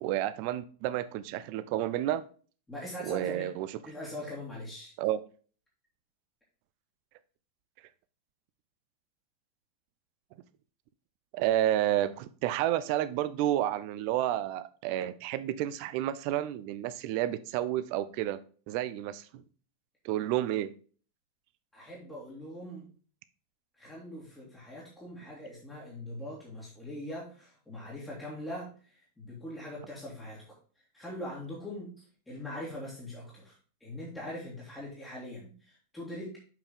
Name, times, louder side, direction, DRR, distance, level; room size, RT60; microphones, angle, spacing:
voice 1, 0.0-2.2 3.0-3.7 5.0-5.2 11.3-18.4 18.7-19.4 20.0-20.7, right 13 dB, 45° right, 14 dB, 0.6 m, -30 dB
voice 2, 2.7-3.5 3.8-4.9 21.7-22.9 23.8-30.4 30.9-33.6 33.8-36.4, left 1 dB, 10° left, -6 dB, 2.5 m, -42 dB
7.0 x 5.4 x 3.7 m, 0.40 s
figure-of-eight pair, 90°, 0 cm